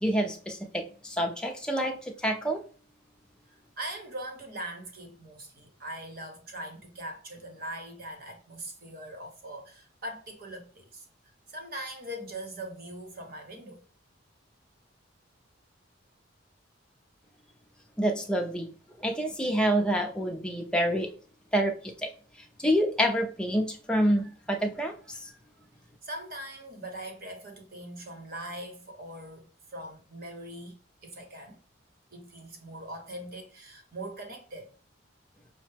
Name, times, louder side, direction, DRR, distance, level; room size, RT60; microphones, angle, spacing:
voice 1, 0.0-2.6 18.0-18.7 19.0-21.1 21.5-22.1 22.6-25.3, equal, 5° left, 0.5 m, -27 dB
voice 2, 3.5-11.1 11.5-13.8 26.0-30.7 31.0-31.6 32.1-34.7, right 1 dB, 45° right, 0.9 m, -41 dB
5.5 x 2.1 x 3.3 m
head